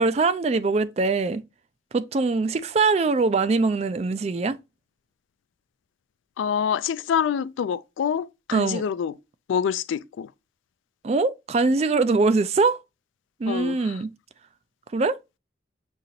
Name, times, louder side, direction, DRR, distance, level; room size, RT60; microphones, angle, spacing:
voice 1, 0.0-1.4 1.9-4.6 8.5-8.8 11.0-12.8 13.4-14.1 14.9-15.2, right 3 dB, 35° right, 0.3 m, -22 dB
voice 2, 6.4-9.1 9.5-10.3 13.5-13.9, left 7 dB, 80° left, 0.3 m, -26 dB
6.3 x 2.9 x 2.7 m
head